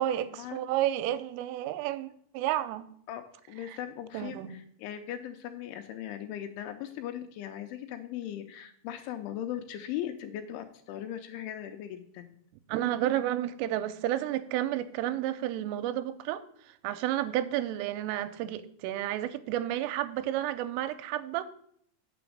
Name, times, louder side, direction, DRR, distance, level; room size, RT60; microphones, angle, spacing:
voice 1, 0.0-2.9 3.7-3.8 4.1-4.6 12.7-21.4, right 13 dB, 85° right, 3.1 m, -31 dB
voice 2, 3.1-12.3, left 11 dB, 80° left, 2.8 m, -39 dB
6.9 x 6.0 x 7.2 m
omnidirectional pair, 5.7 m